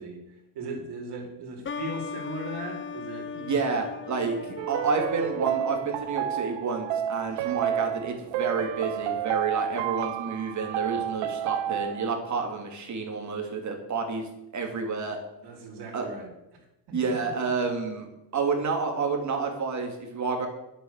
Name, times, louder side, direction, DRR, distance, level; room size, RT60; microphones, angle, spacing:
voice 1, 0.0-3.3 4.2-4.5 15.4-16.3 16.9-17.0, right 2 dB, 60° right, 0 dB, 4.8 m, -38 dB
sound 1, 1.6-7.1, left 6 dB, 25° left, 1.2 m, -39 dB
voice 2, 3.3-15.2 15.9-16.1 16.9-18.1 18.3-20.5, right 4 dB, 40° right, 2 dB, 3.5 m, -29 dB
sound 2, 4.6-12.1, right 10 dB, 75° right, 0.9 m, -30 dB
11.0 x 9.0 x 7.8 m, 0.91 s
cardioid pair, 130°, 46 cm